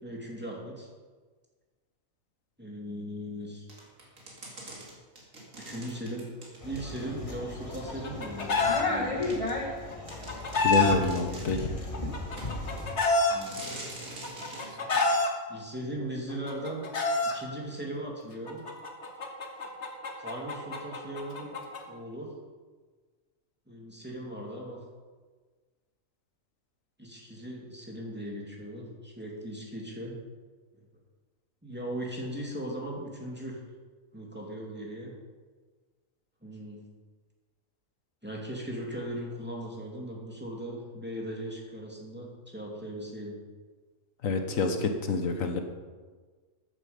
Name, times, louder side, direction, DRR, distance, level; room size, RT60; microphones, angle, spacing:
voice 1, 0.0-0.9 2.6-3.7 5.6-6.2 6.6-8.6 8.9-9.3 13.3-13.7 14.8-15.2 15.5-16.8 17.3-18.6 20.2-21.6 21.9-22.3 23.7-24.8 27.0-30.1 31.6-33.6 34.1-35.1 36.4-36.8 38.2-43.4, right 1 dB, 10° right, -3 dB, 2.6 m, -38 dB
sound 1, 3.7-7.3 7.8-7.9 8.6-8.7 9.2-9.4 9.8-9.9 10.1-11.7 12.4-12.9 13.3-14.7, right 1 dB, 90° right, 3.0 m, -44 dB
sound 2, 6.6-12.9, left 2 dB, 25° left, 1.7 m, -35 dB
Chicken rooster, 7.7-8.8 9.9-11.0 11.9-13.3 14.2-15.3 16.3-17.3 18.5-21.8, left 3 dB, 60° left, 1.8 m, -27 dB
voice 2, 10.6-11.7 44.2-45.6, left 3 dB, 85° left, 6 dB, 1.6 m, -27 dB
13.5 x 10.0 x 5.3 m, 1.4 s
omnidirectional pair, 1.4 m